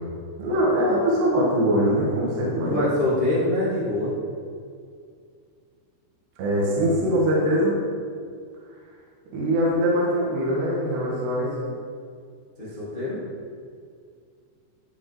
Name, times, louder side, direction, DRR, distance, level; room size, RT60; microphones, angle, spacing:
voice 1, 0.4-2.8 6.4-7.8 9.3-11.7, equal, 65° right, -5 dB, 3.6 m, -22 dB
voice 2, 2.7-4.1 12.6-13.2, left 1 dB, 35° left, -9 dB, 0.8 m, -24 dB
14.5 x 5.2 x 4.9 m, 2.2 s
omnidirectional pair, 5.4 m